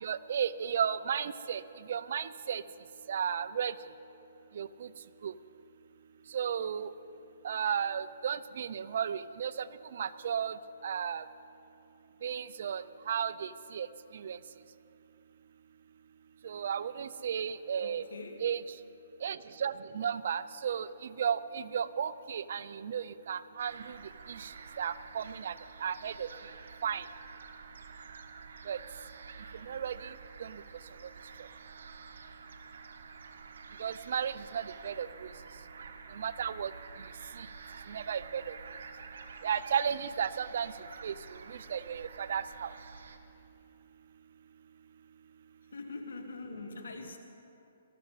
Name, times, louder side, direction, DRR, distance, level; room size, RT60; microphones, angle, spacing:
voice 1, 0.0-1.6 1.9-2.6 3.1-3.7 4.6-4.7 5.2-5.3 6.3-6.9 7.4-9.5 10.0-10.5 10.8-11.2 12.2-13.9 14.2-14.4 16.4-18.0 18.4-18.6 19.2-20.9 21.2-24.0 24.4-24.5 24.8-25.5 25.8-26.3 26.8-27.0 28.7-28.8 29.7-29.9 30.4-30.5 33.8-35.1 36.2-36.7 37.9-38.5 39.4-40.7 41.0-41.1 41.7-42.7, right 8 dB, 55° right, 15 dB, 0.4 m, -33 dB
voice 2, 17.8-18.5 45.7-47.2, left 3 dB, 90° left, 4 dB, 1.7 m, -43 dB
sound 1, 23.6-43.2, right 5 dB, 70° right, 1.1 m, -49 dB
18.5 x 13.5 x 4.1 m, 2.8 s
hypercardioid pair, 160°, 0 cm